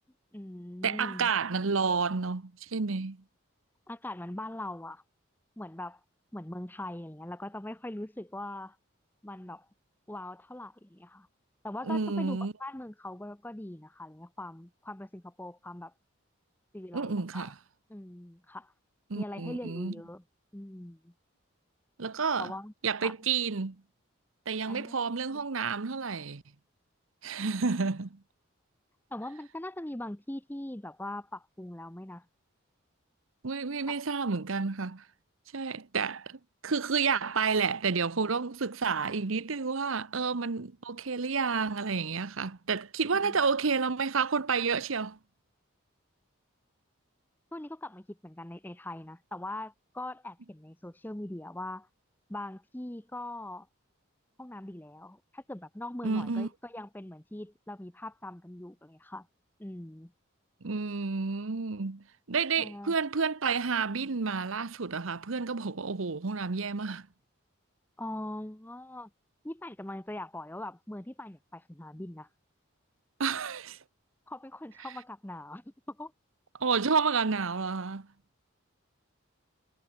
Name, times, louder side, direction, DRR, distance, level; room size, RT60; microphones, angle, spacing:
voice 1, 0.3-1.3 3.9-5.0 5.6-6.0 6.3-8.8 9.2-9.7 10.1-11.3 11.6-15.9 16.7-17.5 17.9-18.7 19.2-20.2 20.5-21.1 22.4-22.7 23.0-23.1 24.7-25.0 25.3-25.4 29.1-32.3 33.9-34.0 43.2-43.4 47.5-51.9 52.3-53.7 54.4-59.3 59.6-60.1 62.6-62.9 68.0-69.1 69.4-72.3 74.3-76.1, left 1 dB, 10° left, 0.7 m, -41 dB
voice 2, 0.8-3.2 11.8-12.5 16.9-17.5 19.1-19.9 22.0-22.5 22.8-23.8 24.5-26.4 27.2-28.2 33.4-35.0 35.5-45.2 56.0-56.5 60.6-67.1 73.2-73.8 76.6-78.1, right 5 dB, 75° right, 0.9 m, -30 dB
head